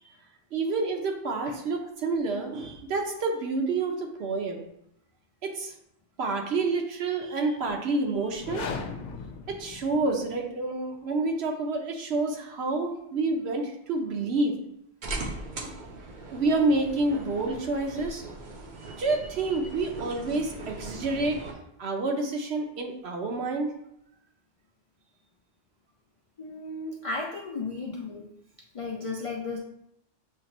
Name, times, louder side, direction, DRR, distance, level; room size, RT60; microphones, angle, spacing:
voice 1, 0.5-4.6 5.4-5.7 6.2-8.7 9.5-14.6 16.3-18.2 19.0-21.4 21.8-23.7, right 3 dB, 70° right, 3 dB, 1.0 m, -28 dB
sound 1, 8.3-10.4, left 5 dB, 85° left, 0.9 m, -37 dB
sound 2, 15.0-21.5, right 2 dB, 50° right, 0.7 m, -39 dB
voice 2, 26.4-28.2 28.7-29.6, left 3 dB, 60° left, 1 dB, 0.3 m, -34 dB
7.1 x 2.4 x 3.0 m, 0.77 s
omnidirectional pair, 1.2 m